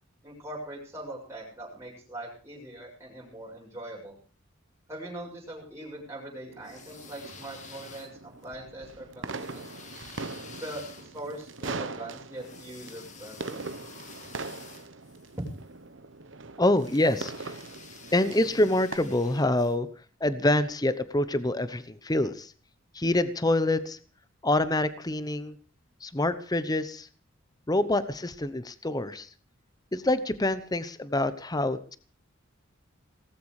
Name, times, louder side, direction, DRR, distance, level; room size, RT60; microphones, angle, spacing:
voice 1, 0.2-4.2 4.9-9.6 10.6-13.6, right 1 dB, 15° right, -3 dB, 6.6 m, -41 dB
sound 1, 6.5-19.0, right 3 dB, 65° right, 1.2 m, -41 dB
sound 2, 6.6-8.5 9.2-15.6 16.7-19.8, left 5 dB, 35° left, 2.4 m, -50 dB
voice 2, 16.6-17.6 18.1-19.9 20.2-22.5 22.9-24.0 24.4-25.6 26.0-27.1 27.7-29.3 29.9-32.0, left 1 dB, 20° left, 14 dB, 0.9 m, -26 dB
18.5 x 14.5 x 4.9 m, 0.40 s
head